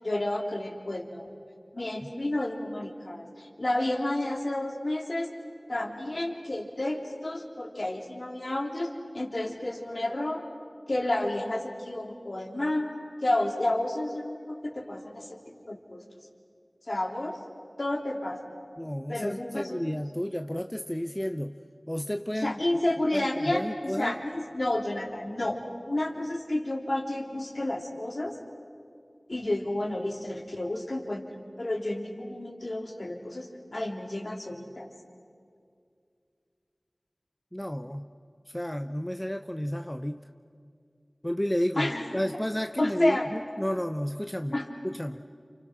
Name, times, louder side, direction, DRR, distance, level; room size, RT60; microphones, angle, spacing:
voice 1, 0.0-1.3 1.7-5.3 5.7-10.4 10.9-12.9 13.2-15.4 15.7-16.0 16.8-17.4 17.8-18.4 19.1-19.8 22.4-25.6 25.8-28.4 29.3-31.2 31.6-34.9 41.8-42.1 42.8-43.3 44.5-44.7, left 1 dB, 55° left, 1 dB, 3.4 m, -31 dB
voice 2, 18.8-21.6 21.9-22.6 23.1-24.1 37.5-38.1 38.5-40.3 41.2-44.6 44.8-45.2, equal, 15° left, 7 dB, 0.7 m, -31 dB
29.5 x 29.0 x 6.2 m, 2.3 s
wide cardioid pair, 55°, 0 cm